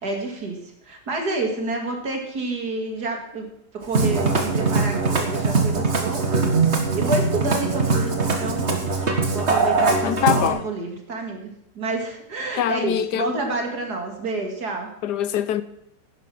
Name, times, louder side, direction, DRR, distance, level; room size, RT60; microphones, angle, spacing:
voice 1, 0.0-3.5 3.7-14.9, right 3 dB, 60° right, 2.8 m, -29 dB
Musical instrument, 3.8-10.5, right 3 dB, 40° right, 1.8 m, -21 dB
voice 2, 10.0-10.6 12.6-13.3 15.0-15.6, left 10 dB, 75° left, 1.2 m, -23 dB
11.5 x 10.0 x 6.1 m
omnidirectional pair, 1.9 m